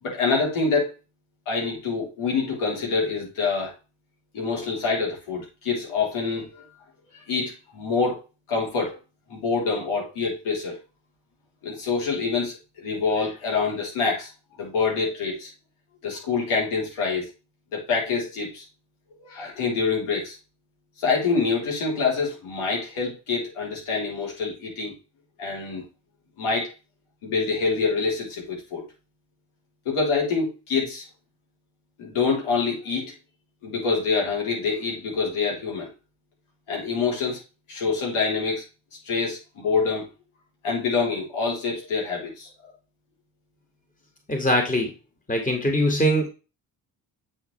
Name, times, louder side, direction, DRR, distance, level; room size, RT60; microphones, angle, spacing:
voice 1, 0.0-0.9 1.5-3.7 4.3-6.6 7.1-8.2 8.5-9.0 9.3-10.8 11.6-14.3 14.6-15.5 16.0-17.3 17.7-18.6 19.2-20.4 21.0-25.0 25.4-25.8 26.4-26.7 27.2-28.8 29.9-31.1 32.0-33.1 33.6-35.9 36.7-37.4 37.7-38.6 39.0-40.1 40.6-42.7, left 4 dB, 85° left, -3 dB, 3.8 m, -26 dB
voice 2, 44.3-44.9 45.3-46.3, equal, 15° left, 3 dB, 2.1 m, -22 dB
8.7 x 4.7 x 3.3 m, 0.30 s
supercardioid pair, 55°, 48 cm